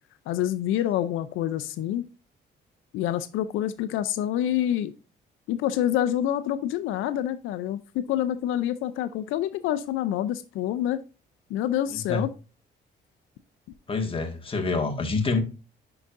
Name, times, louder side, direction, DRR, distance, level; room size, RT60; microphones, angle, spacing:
voice 1, 0.3-2.0 2.9-4.9 5.5-11.0 11.5-12.3, left 11 dB, 90° left, 0.5 m, -27 dB
voice 2, 11.9-12.2 13.9-15.4, left 3 dB, 25° left, 1.7 m, -27 dB
9.9 x 4.8 x 2.5 m
cardioid pair, 90°, 20 cm